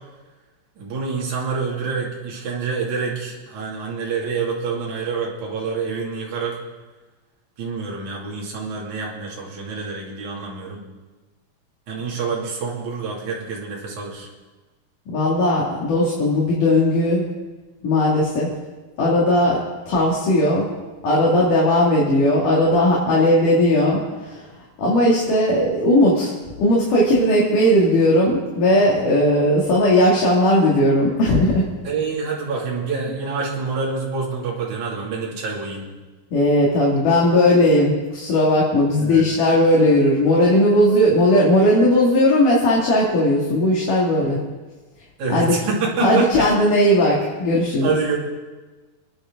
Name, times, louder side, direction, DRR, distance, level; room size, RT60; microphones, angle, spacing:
voice 1, 0.8-6.6 7.6-10.8 11.9-14.3 31.8-35.9 39.0-39.3 45.2-46.5 47.8-48.2, right 5 dB, 55° right, -3 dB, 3.8 m, -27 dB
voice 2, 15.1-17.2 17.8-18.5 19.0-19.6 19.9-20.7 21.0-24.5 24.8-31.7 36.3-44.4 45.3-45.6 46.0-48.0, left 1 dB, 65° left, -5 dB, 3.9 m, -17 dB
29.5 x 10.0 x 3.8 m, 1.3 s
omnidirectional pair, 4.1 m